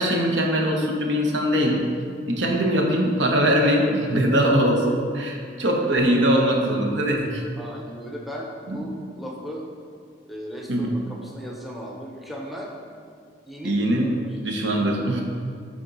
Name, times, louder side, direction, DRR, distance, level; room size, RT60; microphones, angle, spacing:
voice 1, 0.0-1.8 2.2-7.4 8.7-8.8 10.7-11.0 13.6-15.2, equal, 75° right, 1 dB, 0.9 m, -22 dB
voice 2, 7.6-9.6 10.3-12.7 13.4-14.3, equal, ahead, -2 dB, 0.7 m, -36 dB
8.6 x 3.7 x 3.9 m, 2.2 s
head